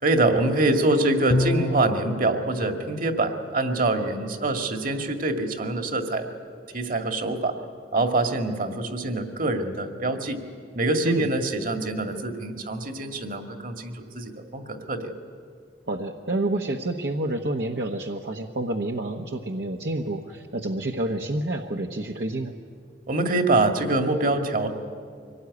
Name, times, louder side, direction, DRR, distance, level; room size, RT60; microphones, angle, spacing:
voice 1, 0.0-6.3 6.7-7.6 7.9-10.4 10.7-15.1 23.1-24.7, right 2 dB, 50° right, 5 dB, 1.9 m, -25 dB
Bowed string instrument, 1.3-2.2, left 2 dB, 35° left, 0.5 m, -26 dB
voice 2, 15.9-22.6, right 2 dB, 70° right, 2 dB, 1.1 m, -28 dB
24.0 x 18.0 x 9.7 m, 2.2 s
head